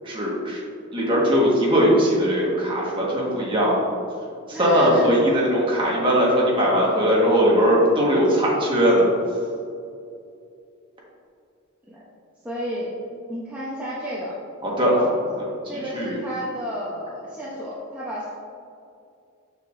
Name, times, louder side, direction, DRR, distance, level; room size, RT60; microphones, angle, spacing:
voice 1, 0.0-0.6 0.9-3.9 4.5-9.1 14.6-15.1 15.7-16.2, equal, 25° right, -5 dB, 1.6 m, -20 dB
voice 2, 4.5-5.1 11.9-12.0 12.4-12.9 13.3-14.4 14.9-15.1 15.7-18.3, equal, 10° right, -8 dB, 0.9 m, -32 dB
6.9 x 6.5 x 2.7 m, 2.5 s
head